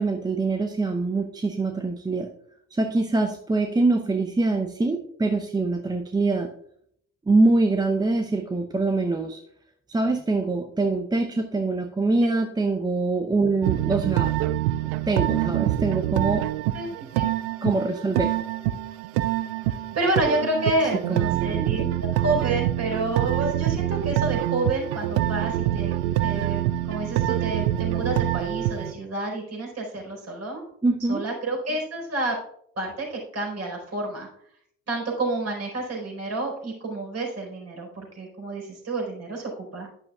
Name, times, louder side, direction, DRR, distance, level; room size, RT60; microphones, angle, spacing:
voice 1, 0.0-2.3 2.7-6.5 7.3-9.4 9.9-14.3 15.1-16.5 17.6-18.4 21.1-21.2 21.5-21.9 30.8-31.2, right 3 dB, 10° right, 5 dB, 0.8 m, -24 dB
sound 1, 13.6-28.9, right 14 dB, 60° right, 0.6 m, -25 dB
voice 2, 19.7-21.8 22.2-25.9 26.2-30.6 31.1-32.4 32.8-34.3 34.9-39.9, right 2 dB, 40° right, 0 dB, 4.6 m, -29 dB
11.5 x 10.0 x 2.4 m, 0.68 s
figure-of-eight pair, 55°, 40 cm